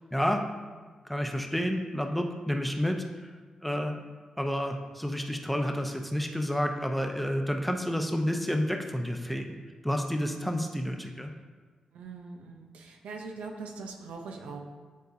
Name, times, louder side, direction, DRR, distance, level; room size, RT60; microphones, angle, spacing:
voice 1, 0.1-0.4 1.0-3.3 3.6-4.0 4.4-11.3, equal, 5° left, 3 dB, 0.8 m, -30 dB
voice 2, 3.7-4.1 11.9-14.6, right 4 dB, 90° right, 2 dB, 0.6 m, -42 dB
9.4 x 3.8 x 2.7 m, 1.4 s
supercardioid pair, 45°, 2 cm